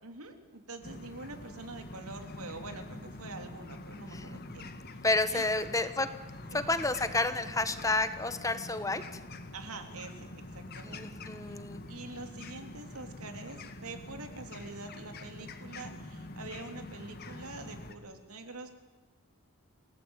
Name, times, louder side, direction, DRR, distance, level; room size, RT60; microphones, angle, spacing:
voice 1, 0.0-5.5 6.5-6.6 9.5-11.1 11.4-11.6 11.9-18.8, right 3 dB, 85° right, 6 dB, 3.3 m, -45 dB
sound 1, 0.8-17.9, left 2 dB, 45° left, 2.0 m, -45 dB
voice 2, 5.0-6.1 6.5-9.0 10.8-11.8, left 2 dB, 15° left, 10 dB, 1.3 m, -30 dB
28.5 x 18.0 x 9.1 m, 1.3 s
head